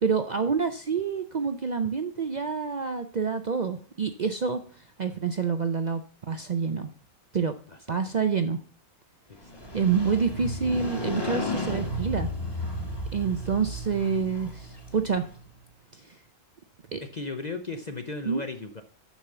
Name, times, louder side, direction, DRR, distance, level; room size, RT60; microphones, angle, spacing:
voice 1, 0.0-4.6 5.0-6.0 6.3-6.9 7.3-7.5 7.9-8.6 9.7-12.3 13.1-15.3 15.9-16.1 16.9-17.0 18.2-18.4, right 6 dB, 70° right, 8 dB, 0.4 m, -27 dB
voice 2, 7.4-8.0 9.3-9.6 13.3-13.6 17.0-18.8, left 3 dB, 40° left, 7 dB, 0.6 m, -37 dB
Motorcycle, 9.4-15.4, left 1 dB, 15° left, 1.5 m, -33 dB
7.2 x 6.2 x 6.6 m, 0.43 s
omnidirectional pair, 1.5 m